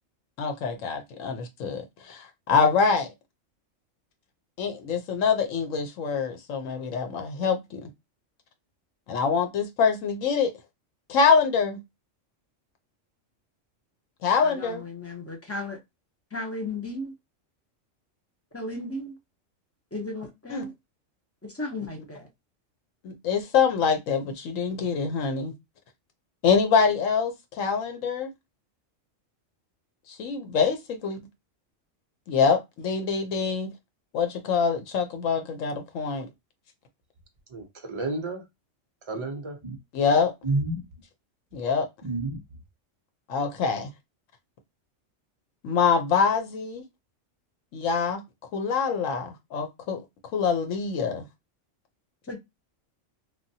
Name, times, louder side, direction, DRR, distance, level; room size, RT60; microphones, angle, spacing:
voice 1, 0.4-3.1 4.6-7.9 9.1-10.5 11.1-11.8 14.2-14.8 20.5-20.6 23.0-25.5 26.4-28.3 30.2-31.2 32.3-33.7 34.1-36.3 39.9-40.3 41.5-41.9 43.3-43.9 45.6-46.8 47.7-48.2 48.5-50.0 50.3-51.2, left 5 dB, 80° left, 1.1 m, -25 dB
voice 2, 14.4-15.8 16.3-17.1 18.5-19.2 19.9-20.7 21.4-22.3 52.3-52.4, left 2 dB, 20° left, 0.4 m, -35 dB
voice 3, 37.5-38.4 39.1-39.8 40.4-40.8 42.0-42.4, right 2 dB, 35° right, 0.4 m, -30 dB
3.3 x 2.3 x 2.7 m
omnidirectional pair, 1.3 m